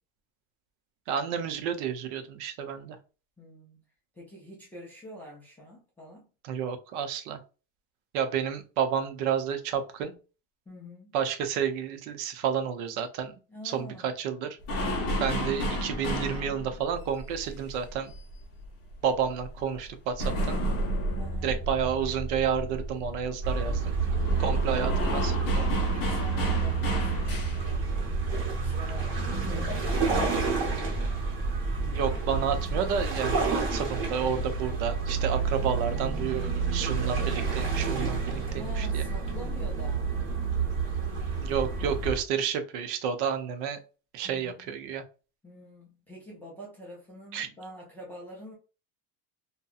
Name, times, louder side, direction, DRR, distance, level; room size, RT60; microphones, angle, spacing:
voice 1, 1.1-3.0 6.4-7.4 8.1-10.1 11.1-13.3 13.6-14.5 15.2-18.1 19.0-20.6 21.4-24.0 24.4-25.7 31.8-39.0 41.4-43.8 44.1-45.0 47.3-47.5, right 7 dB, 65° right, 0.6 m, -30 dB
voice 2, 3.4-3.8 4.1-6.3 10.7-11.1 13.5-14.1 21.2-21.6 25.9-28.1 28.6-30.7 35.6-36.2 38.5-40.2 44.2-44.8 45.4-48.5, equal, 5° left, 0.3 m, -46 dB
sound 1, 14.6-18.9 19.2-27.8, equal, 35° left, 0.7 m, -31 dB
sound 2, 23.4-42.2, right 4 dB, 30° right, 0.9 m, -29 dB
2.7 x 2.2 x 2.3 m
cardioid pair, 170°, 38 cm